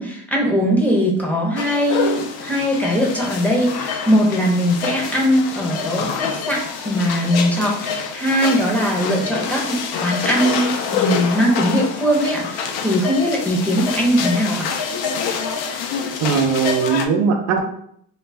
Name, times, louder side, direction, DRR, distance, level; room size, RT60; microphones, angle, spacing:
voice 1, 0.0-14.7, equal, 5° left, -3 dB, 0.6 m, -20 dB
sound 1, 1.6-17.1, left 6 dB, 75° left, 0.5 m, -26 dB
voice 2, 16.2-17.6, right 6 dB, 90° right, 3 dB, 0.6 m, -19 dB
2.3 x 2.1 x 3.2 m, 0.68 s
cardioid pair, 100°, 38 cm